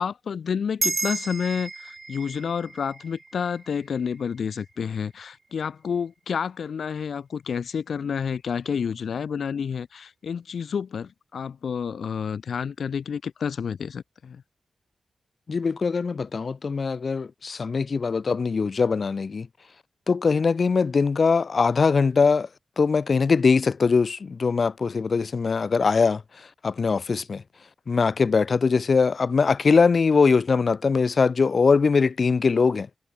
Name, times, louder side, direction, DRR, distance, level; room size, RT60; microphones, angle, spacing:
voice 1, 0.0-14.4, left 6 dB, 65° left, 4.7 m, -29 dB
sound 1, 0.8-5.5, right 3 dB, 30° right, 2.9 m, -34 dB
voice 2, 15.5-19.5 20.1-22.5 22.8-27.4 27.9-32.9, left 5 dB, 45° left, 0.5 m, -22 dB
wide cardioid pair, 140°, 0 cm